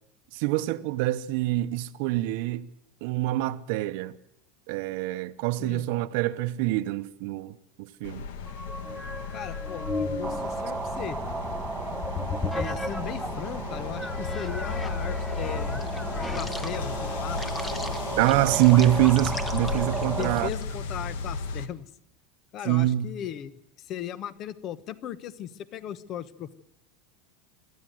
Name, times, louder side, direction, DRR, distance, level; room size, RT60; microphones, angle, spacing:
voice 1, 0.3-2.6 3.0-4.1 4.7-8.2 18.2-20.5 22.6-23.1, right 15 dB, 65° right, 1.0 m, -25 dB
sound 1, 8.0-21.7, left 5 dB, 80° left, 1.7 m, -35 dB
sound 2, 8.5-13.4 14.0-20.6, left 2 dB, 10° left, 1.2 m, -36 dB
voice 2, 9.3-11.2 12.5-15.8 16.1-17.4 20.2-21.9 22.5-26.5, left 10 dB, 35° left, 1.1 m, -37 dB
sound 3, 10.2-20.5, right 4 dB, 15° right, 1.0 m, -34 dB
24.5 x 13.5 x 7.8 m
supercardioid pair, 155°, 0 cm